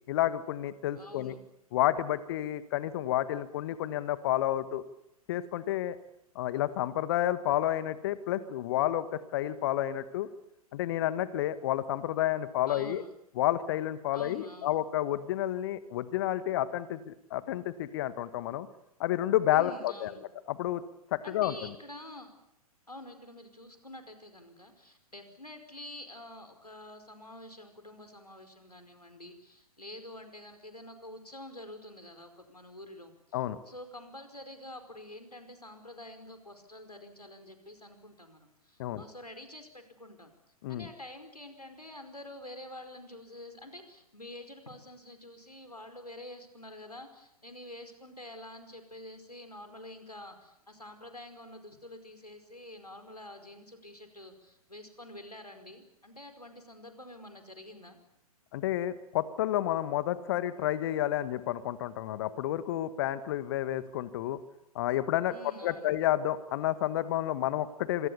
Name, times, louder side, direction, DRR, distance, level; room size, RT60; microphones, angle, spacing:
voice 1, 0.1-1.3 1.7-4.8 5.3-6.0 6.3-10.3 10.7-13.0 13.3-18.7 19.0-20.1 20.5-20.8 21.1-21.7 33.3-33.6 38.8-39.0 40.6-40.9 58.5-64.4 64.7-65.3 65.6-68.1, left 13 dB, 40° left, 14 dB, 1.6 m, -30 dB
voice 2, 1.0-1.4 12.7-13.1 14.1-14.7 19.5-20.2 21.2-22.3 22.9-33.4 33.7-40.3 40.7-58.0 65.3-65.9, left 1 dB, 90° left, 7 dB, 4.9 m, -47 dB
26.5 x 24.0 x 7.0 m, 0.82 s
figure-of-eight pair, 115°, 19 cm